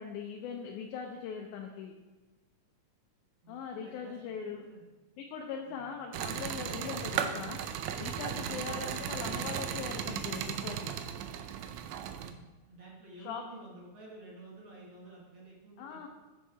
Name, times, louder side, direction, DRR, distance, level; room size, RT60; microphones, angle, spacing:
voice 1, 0.0-2.0 3.5-4.6 5.2-7.6 8.0-10.9 13.2-13.4 15.8-16.1, left 6 dB, 85° left, 2 dB, 2.1 m, -40 dB
voice 2, 3.4-4.8 5.6-5.9 12.1-16.1, right 2 dB, 50° right, -4 dB, 1.7 m, -52 dB
sound 1, 6.1-12.3, right 9 dB, 80° right, 1.7 m, -36 dB
7.0 x 6.4 x 4.8 m, 1.2 s
omnidirectional pair, 3.5 m